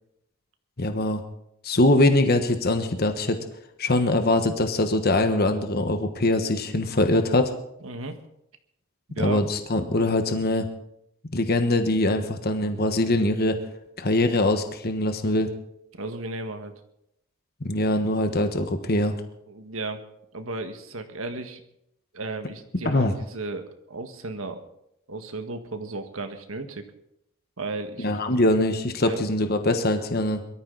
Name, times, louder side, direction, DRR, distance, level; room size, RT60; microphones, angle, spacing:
voice 1, 0.8-1.2 1.6-3.4 3.8-7.5 9.2-10.7 11.3-13.6 14.0-15.5 17.6-19.1 22.8-23.1 28.0-30.4, left 1 dB, 50° left, 7 dB, 1.3 m, -22 dB
voice 2, 7.8-8.2 9.1-9.4 15.9-16.7 19.5-20.0 20.3-21.6 22.1-24.6 25.1-26.9 27.6-28.1 29.0-29.2, right 2 dB, 80° right, 7 dB, 1.7 m, -34 dB
22.5 x 13.5 x 4.0 m, 0.80 s
head